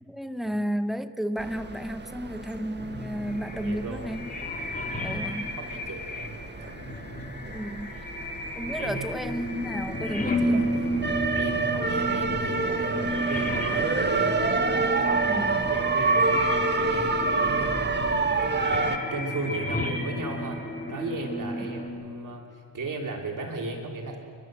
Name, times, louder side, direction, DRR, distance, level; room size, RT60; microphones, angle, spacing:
voice 1, 0.0-4.3 5.0-5.5 7.5-8.0 8.6-10.9 15.2-15.7 21.6-21.7, equal, ahead, 10 dB, 1.2 m, -32 dB
sound 1, 1.4-19.0, right 3 dB, 25° right, 1.7 m, -28 dB
sound 2, 2.8-21.9, equal, 20° left, 3.4 m, -33 dB
voice 2, 3.6-4.0 5.6-6.3 6.6-7.0 7.9-8.1 8.8-9.1 11.3-14.5 15.0-18.2 18.7-20.6 20.9-24.2, right 3 dB, 45° right, 0 dB, 3.2 m, -36 dB
30.0 x 12.0 x 7.6 m, 2.4 s
supercardioid pair, 65°, 44 cm